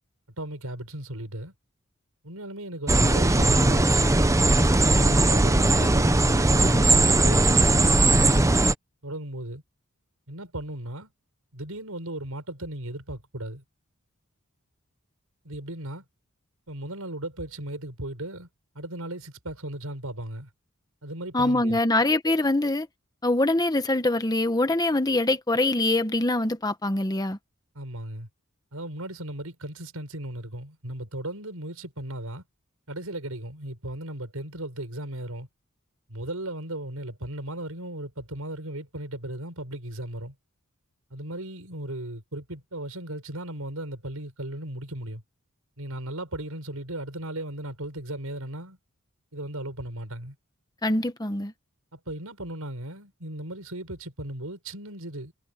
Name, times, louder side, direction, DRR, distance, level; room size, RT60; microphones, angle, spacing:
voice 1, 0.4-1.5 2.2-4.2 4.8-8.4 9.0-9.6 10.3-11.1 11.5-13.6 15.4-16.0 16.7-18.5 18.7-20.5 21.0-22.0 27.7-28.3 28.7-32.4 32.9-35.5 36.1-40.3 41.1-45.2 45.8-48.8 49.3-50.4 51.9-55.3, right 1 dB, 80° right, 5.9 m, -36 dB
sound 1, 2.9-8.7, right 2 dB, 15° right, 0.8 m, -19 dB
voice 2, 21.3-22.9 23.2-27.4 50.8-51.5, left 2 dB, 20° left, 1.2 m, -24 dB
head